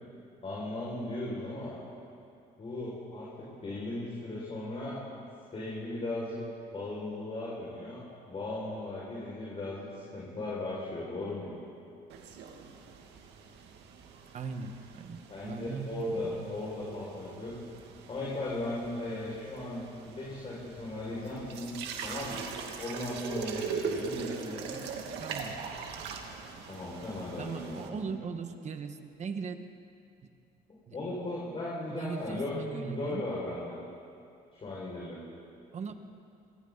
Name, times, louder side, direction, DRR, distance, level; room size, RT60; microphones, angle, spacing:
voice 1, 0.4-1.8 2.6-5.0 5.5-6.4 6.7-11.5 15.3-17.6 18.1-21.7 22.0-22.5 22.8-24.8 26.7-28.1 30.9-33.8 34.5-35.2, left 2 dB, 35° left, -6 dB, 6.2 m, -37 dB
sound 1, 12.1-27.9, right 6 dB, 80° right, 2.4 m, -41 dB
voice 2, 14.3-16.6 25.2-25.6 27.4-29.7 30.9-31.0 31.9-33.3 35.7-35.9, right 5 dB, 45° right, 7 dB, 1.7 m, -39 dB
28.5 x 24.0 x 4.2 m, 2.5 s
cardioid pair, 110°, 17 cm